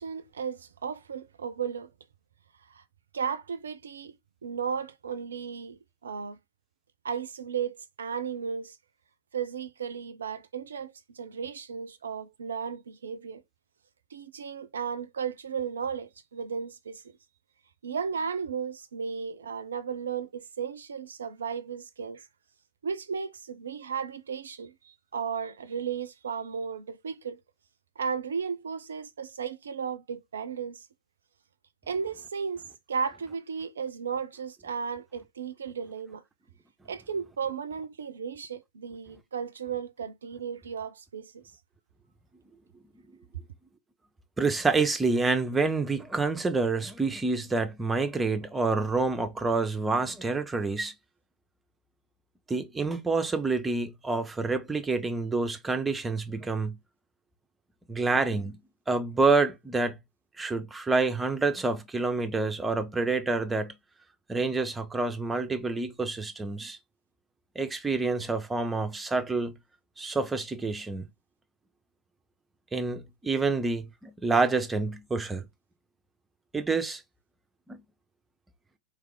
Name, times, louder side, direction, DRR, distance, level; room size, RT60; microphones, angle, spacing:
voice 1, 0.0-1.9 2.7-2.8 3.1-4.2 4.4-6.4 7.0-8.8 9.3-13.4 14.1-17.0 17.8-22.3 22.8-27.4 28.0-30.9 31.9-36.2 36.9-41.4, right 6 dB, 70° right, 0.5 m, -35 dB
voice 2, 44.4-50.9 52.5-56.8 57.9-58.6 58.9-60.0 60.4-63.7 64.3-66.8 67.6-69.5 70.0-71.1 72.7-75.4 76.5-77.0 77.7-77.8, right 3 dB, 10° right, 0.7 m, -27 dB
3.3 x 3.3 x 3.4 m
figure-of-eight pair, 90°, 0 cm